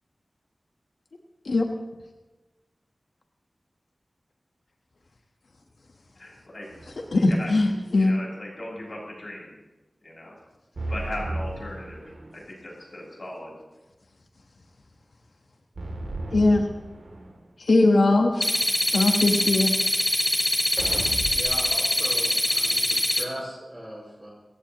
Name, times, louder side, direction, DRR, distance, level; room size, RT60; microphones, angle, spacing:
voice 1, 6.2-6.7 7.1-7.5 7.9-9.6 10.0-10.4 10.9-12.0 12.3-13.6, left 1 dB, 50° left, -4 dB, 6.5 m, -38 dB
sound 1, 6.7-7.4 10.8-12.5 15.8-17.4 20.8-21.7, right 2 dB, 75° right, 2.7 m, -35 dB
voice 2, 7.1-8.1 16.3-16.6 17.6-18.5 18.9-19.7, left 2 dB, 80° left, 3 dB, 1.2 m, -20 dB
sound 2, 18.4-23.2, left 1 dB, 20° left, 1.3 m, -24 dB
voice 3, 21.3-24.3, equal, 15° right, -1 dB, 5.9 m, -38 dB
24.0 x 15.5 x 3.0 m, 1.1 s
wide cardioid pair, 80°, 0 cm